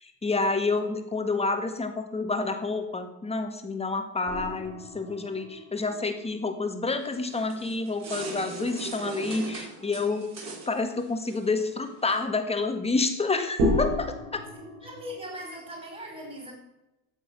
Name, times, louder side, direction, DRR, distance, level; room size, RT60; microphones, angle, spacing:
voice 1, 0.0-10.3 10.7-14.1 14.3-14.4, left 3 dB, 15° left, 6 dB, 1.9 m, -29 dB
sound 1, 4.2-7.7 8.0-8.1 13.6-15.9, left 1 dB, 85° right, 4.8 m, -32 dB
sound 2, 7.0-12.3, right 3 dB, 40° right, 5.7 m, -40 dB
voice 2, 14.5-16.5, equal, 20° right, 0 dB, 4.7 m, -40 dB
13.0 x 8.0 x 6.2 m, 0.94 s
cardioid pair, 115°, 39 cm